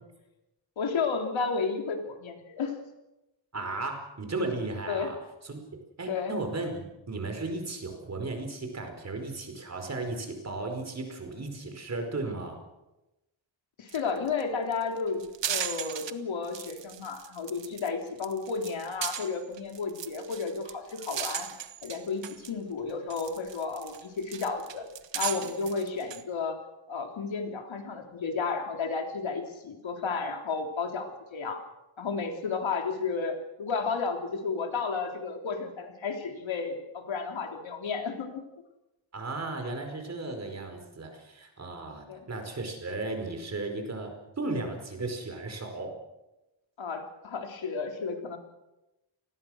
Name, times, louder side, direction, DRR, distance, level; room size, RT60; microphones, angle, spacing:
voice 1, 0.8-2.8 4.9-5.1 6.1-6.3 13.8-21.5 21.8-24.8 25.1-26.6 26.9-31.6 32.0-38.4 42.1-42.2 46.8-48.4, left 4 dB, 85° left, 3 dB, 3.7 m, -32 dB
voice 2, 3.5-5.2 5.4-5.6 6.0-12.6 39.1-44.1 44.4-45.9, right 2 dB, 35° right, 5 dB, 4.9 m, -35 dB
sound 1, 13.9-14.0 14.3-14.4 14.7-16.1 16.4-17.9 18.2-22.5 22.9-26.2, right 9 dB, 70° right, 1.5 m, -37 dB
29.0 x 20.5 x 6.5 m, 0.98 s
wide cardioid pair, 175°, 45 cm